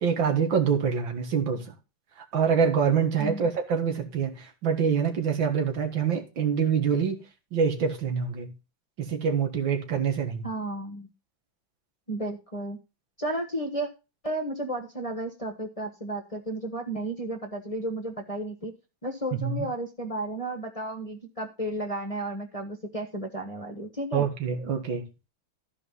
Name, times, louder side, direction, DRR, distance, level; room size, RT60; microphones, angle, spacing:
voice 1, 0.0-1.7 2.3-7.2 7.5-8.5 9.0-10.4 19.4-19.7 24.1-25.0, right 6 dB, 75° right, 2.3 m, -25 dB
voice 2, 10.4-11.1 12.1-12.8 13.2-13.9 14.2-18.7 19.0-24.3, right 1 dB, 20° left, 1.1 m, -33 dB
13.5 x 4.9 x 5.4 m
omnidirectional pair, 2.1 m